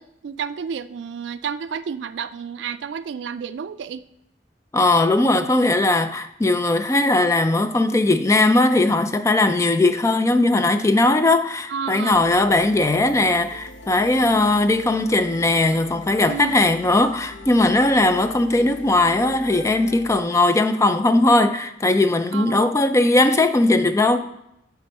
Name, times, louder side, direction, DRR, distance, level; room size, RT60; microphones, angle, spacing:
voice 1, 0.0-4.0 11.7-12.2 16.3-16.6 22.3-22.8, right 7 dB, 80° right, 0.4 m, -31 dB
voice 2, 4.7-24.3, left 2 dB, 15° left, 0.4 m, -19 dB
sound 1, 12.1-20.2, left 2 dB, 80° left, 0.9 m, -40 dB
8.7 x 3.6 x 5.3 m
head